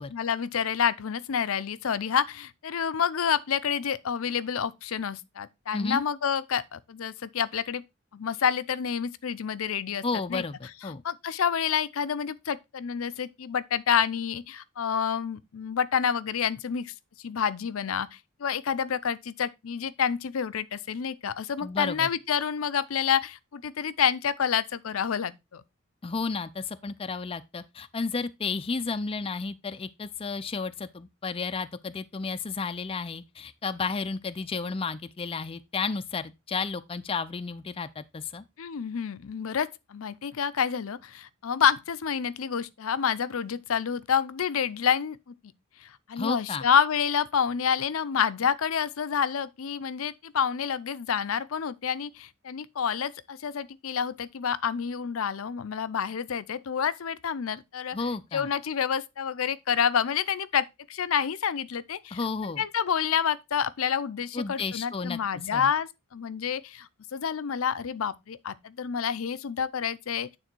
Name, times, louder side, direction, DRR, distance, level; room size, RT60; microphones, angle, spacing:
voice 1, 0.1-7.8 8.1-10.0 10.3-10.4 11.0-16.9 17.2-18.1 18.4-25.6 38.6-45.2 45.8-58.0 58.3-62.2 62.6-70.3, left 7 dB, 80° left, 0.5 m, -28 dB
voice 2, 10.0-11.0 21.6-22.1 26.0-38.4 46.2-46.6 57.9-58.5 62.1-62.6 64.3-65.2 65.5-65.7, left 4 dB, 25° left, 0.4 m, -32 dB
9.1 x 3.7 x 4.4 m
head